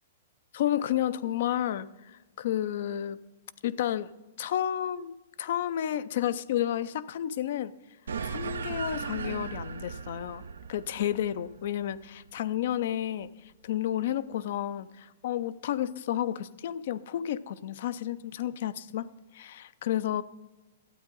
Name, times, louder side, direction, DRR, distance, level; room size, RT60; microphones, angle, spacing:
voice 1, 0.5-3.2 3.6-4.1 4.4-7.7 8.3-10.4 10.7-19.1 19.3-20.2, left 11 dB, 65° left, 0.4 m, -31 dB
sound 1, 8.1-12.8, right 5 dB, 85° right, 0.5 m, -37 dB
12.5 x 8.7 x 3.9 m
hypercardioid pair, 125°, 0 cm